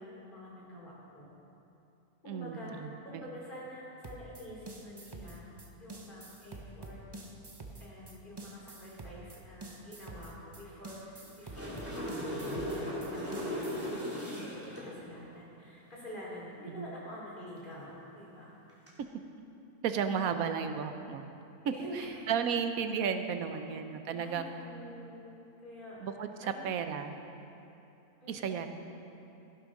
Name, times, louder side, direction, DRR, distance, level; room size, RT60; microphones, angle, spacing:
voice 1, 0.0-1.3 2.2-5.4 5.8-7.0 7.8-12.4 12.6-18.5 21.6-22.2 23.4-26.0 26.4-26.7 28.2-28.7, equal, 30° left, -5 dB, 3.4 m, -47 dB
voice 2, 2.3-3.2 16.7-16.9 19.8-21.2 21.6-24.5 26.0-26.3 26.6-27.1 28.3-28.7, right 7 dB, 70° right, 8 dB, 1.1 m, -33 dB
sound 1, 4.0-13.9, right 2 dB, 30° right, 0.5 m, -47 dB
sound 2, 11.3-14.9 18.7-18.9, equal, 10° right, 2.8 m, -37 dB
16.0 x 11.5 x 3.8 m, 2.8 s
omnidirectional pair, 1.6 m